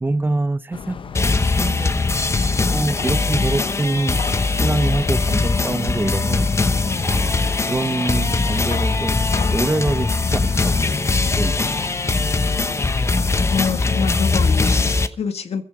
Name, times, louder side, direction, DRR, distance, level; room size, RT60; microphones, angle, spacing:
voice 1, 0.0-1.9 2.7-6.5 7.0-7.4 7.7-10.9 11.4-11.7, right 2 dB, 20° right, 0.7 m, -25 dB
sound 1, 0.7-14.1, left 6 dB, 55° left, 0.7 m, -33 dB
sound 2, 1.1-15.1, left 3 dB, 25° left, 1.0 m, -21 dB
voice 2, 13.5-15.6, left 6 dB, 75° left, 1.8 m, -26 dB
15.5 x 14.0 x 4.9 m
wide cardioid pair, 125°, 11 cm